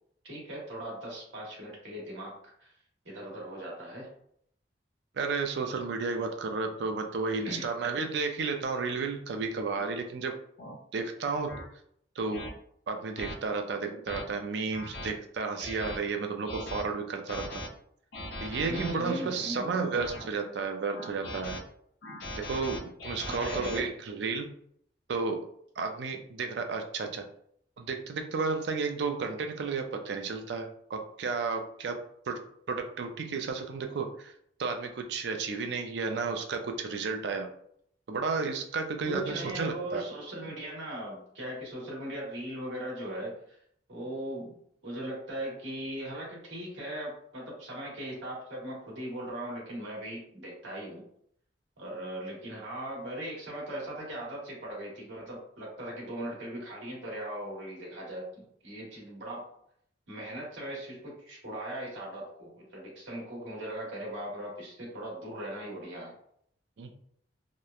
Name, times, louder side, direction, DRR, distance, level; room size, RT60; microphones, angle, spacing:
voice 1, 0.2-2.7 3.0-4.1 7.4-7.7 18.7-19.8 23.3-23.9 39.0-43.6 43.9-51.0 51.8-59.5 60.1-66.2, right 1 dB, 85° right, -3 dB, 1.1 m, -39 dB
voice 2, 5.2-10.3 10.9-11.5 12.2-12.5 12.9-17.6 18.4-21.6 22.4-24.5 25.1-25.4 25.8-27.2 27.8-32.0 32.3-32.4 32.7-34.3 34.6-37.5 38.1-40.0 66.8-67.0, right 4 dB, 65° right, 5 dB, 0.4 m, -32 dB
sound 1, 9.8-9.9 10.6-10.8 11.5-11.6 12.3-12.5 13.2-13.3 13.9-14.2 14.7-15.1 15.6-16.0 16.5-16.8 17.3-17.7 18.1-18.9 19.6-20.3 20.9-21.6 22.0-23.8, left 1 dB, 65° left, 0.5 m, -40 dB
2.9 x 2.0 x 2.3 m, 0.67 s
head